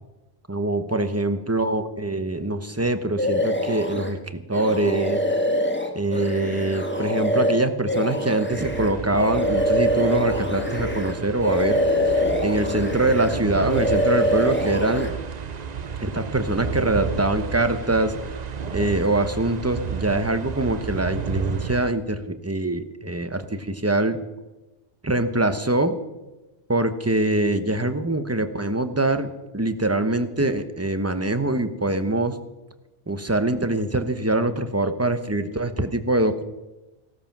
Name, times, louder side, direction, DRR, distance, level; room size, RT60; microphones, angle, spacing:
voice 1, 0.5-5.2 5.9-11.8 12.1-15.1 16.0-18.1 18.7-24.2 25.0-26.0 26.7-32.4 33.1-36.4, right 2 dB, 15° right, 9 dB, 0.9 m, -24 dB
sound 1, 3.2-4.1 4.5-11.2 11.4-13.4 13.7-15.1, equal, 10° left, 1.5 m, -24 dB
sound 2, 8.6-21.9, right 6 dB, 40° right, 0.8 m, -32 dB
17.5 x 13.0 x 6.0 m, 1.0 s
omnidirectional pair, 1.2 m